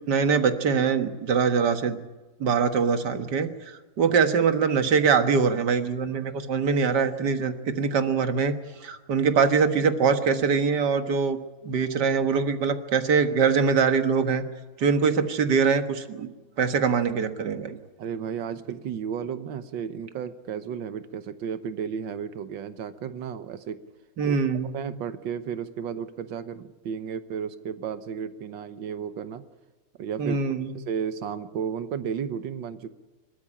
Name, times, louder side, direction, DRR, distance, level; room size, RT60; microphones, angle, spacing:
voice 1, 0.1-2.0 2.4-11.4 11.6-14.4 14.8-16.3 16.6-17.8 24.2-24.7 30.2-30.8, right 5 dB, 65° right, 8 dB, 2.0 m, -23 dB
voice 2, 18.0-23.8 24.2-24.4 24.7-29.4 30.0-30.4 30.7-32.9, right 7 dB, 90° right, 11 dB, 1.8 m, -33 dB
26.0 x 13.5 x 10.0 m, 1.2 s
omnidirectional pair, 2.0 m